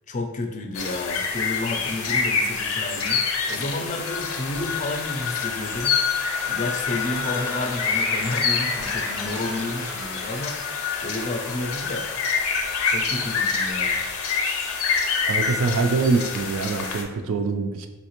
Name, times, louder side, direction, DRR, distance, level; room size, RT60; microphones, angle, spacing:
voice 1, 0.1-6.0 6.5-12.1 12.9-14.0, left 2 dB, 35° left, 4 dB, 0.4 m, -31 dB
sound 1, 0.8-17.0, left 5 dB, 85° left, 0.5 m, -26 dB
sound 2, 3.9-12.2 12.6-12.7 13.2-13.5, equal, 5° right, 0.6 m, -38 dB
voice 2, 15.2-17.9, right 4 dB, 65° right, 5 dB, 0.3 m, -24 dB
4.2 x 2.8 x 2.9 m, 1.2 s
head